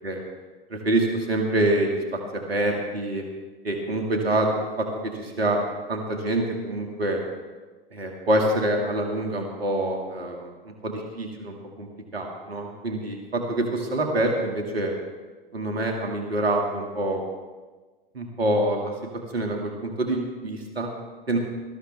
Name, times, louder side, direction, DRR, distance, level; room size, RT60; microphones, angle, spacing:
voice 1, 0.7-1.9 2.3-3.2 3.6-4.5 4.8-4.9 5.2-5.6 5.9-7.2 7.9-10.5 10.8-11.9 12.1-14.9 15.5-17.2 18.1-18.9 19.3-20.9 21.3-21.4, right 1 dB, 85° right, 2 dB, 2.0 m, -26 dB
19.5 x 13.5 x 3.3 m, 1.3 s
figure-of-eight pair, 85°, 30 cm